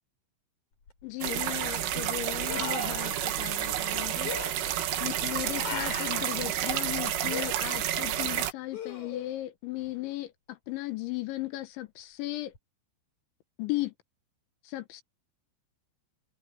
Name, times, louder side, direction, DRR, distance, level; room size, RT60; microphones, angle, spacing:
sound 1, 0.9-1.0 2.5-3.1 4.2-4.5 5.6-6.3 7.3-7.5 8.7-9.4 12.5-12.6, left 4 dB, 40° left, 7.2 m, -37 dB
voice 1, 1.0-4.3 5.0-12.5 13.6-13.9 14.7-15.0, left 17 dB, 75° left, 3.7 m, -36 dB
sound 2, 1.2-8.5, right 11 dB, 85° right, 4.5 m, -30 dB
omnidirectional pair, 5.5 m